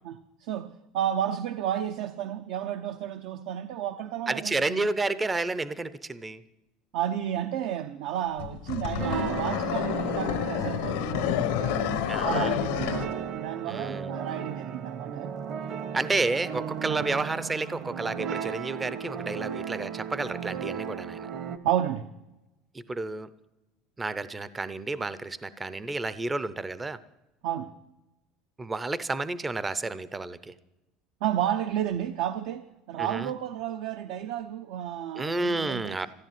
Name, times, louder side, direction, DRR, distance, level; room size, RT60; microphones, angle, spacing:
voice 1, 0.0-4.9 6.9-11.6 12.2-15.3 16.9-17.1 21.6-22.1 27.4-27.7 31.2-36.1, right 10 dB, 70° right, 0.7 m, -32 dB
voice 2, 4.3-6.4 12.1-12.6 13.7-14.1 15.9-21.3 22.9-23.3 24.0-27.0 28.6-30.5 33.0-33.3 35.2-36.1, right 3 dB, 15° right, 0.5 m, -31 dB
sound 1, 8.4-13.1, left 13 dB, 90° left, 1.3 m, -29 dB
sound 2, 9.0-21.6, right 7 dB, 45° right, 1.0 m, -35 dB
14.5 x 10.5 x 9.1 m
cardioid pair, 160°, 0 cm